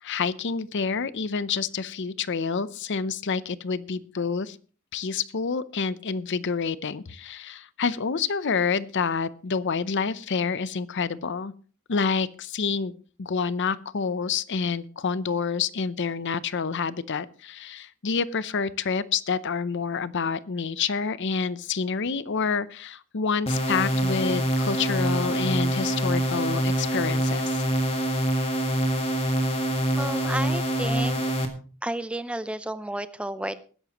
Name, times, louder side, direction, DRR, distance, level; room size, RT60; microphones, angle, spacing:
voice 1, 0.0-4.6 4.9-11.5 11.9-12.9 13.2-27.6, left 5 dB, 55° left, 16 dB, 0.6 m, -28 dB
sound 1, 23.5-31.5, right 1 dB, 25° left, 1.9 m, -25 dB
voice 2, 30.0-31.2 31.8-33.6, right 1 dB, 5° right, 13 dB, 0.5 m, -31 dB
20.0 x 11.0 x 3.0 m, 0.39 s
head